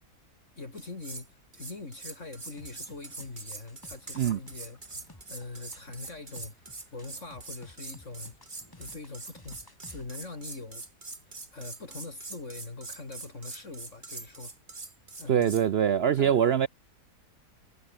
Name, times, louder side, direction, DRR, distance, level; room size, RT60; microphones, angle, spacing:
voice 1, 0.6-6.5 6.9-8.3 8.7-10.8 11.3-14.5 15.2-15.6 16.2-16.4, left 3 dB, 45° left, 3.5 m, -43 dB
sound 1, 0.8-1.3 1.5-15.7, right 3 dB, 30° right, 2.4 m, -43 dB
sound 2, 2.6-10.2, left 1 dB, 15° left, 2.9 m, -54 dB
Gurgling, 3.7-10.9, left 2 dB, 75° left, 7.7 m, -63 dB
voice 2, 15.3-16.7, right 9 dB, 70° right, 0.5 m, -23 dB
omnidirectional pair, 1.7 m